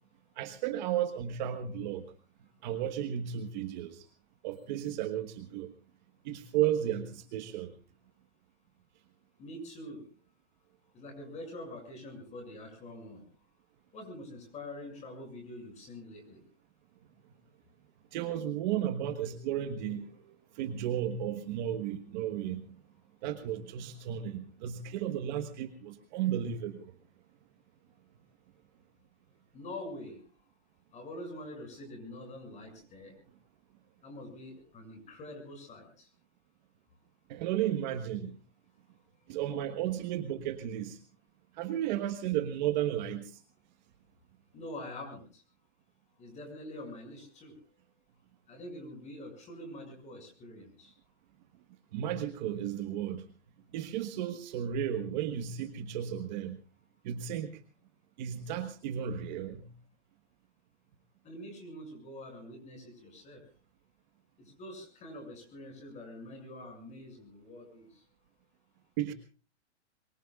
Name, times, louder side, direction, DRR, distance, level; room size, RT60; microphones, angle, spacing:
voice 1, 0.4-2.1 2.6-4.1 4.4-5.7 6.2-7.7 18.1-22.8 23.2-26.9 37.3-38.4 39.3-41.0 41.5-43.4 51.9-53.3 53.7-56.6 57.0-57.6 58.2-59.7 69.0-69.1, right 10 dB, 40° right, 8 dB, 1.5 m, -34 dB
voice 2, 9.4-10.0 10.9-13.2 13.9-16.4 29.5-30.2 30.9-33.1 34.0-36.1 44.5-45.4 46.2-47.5 48.5-50.9 61.2-63.4 64.6-67.9, left 1 dB, 20° left, 4 dB, 6.8 m, -45 dB
25.5 x 23.0 x 2.5 m, 0.37 s
hypercardioid pair, 150°, 35 cm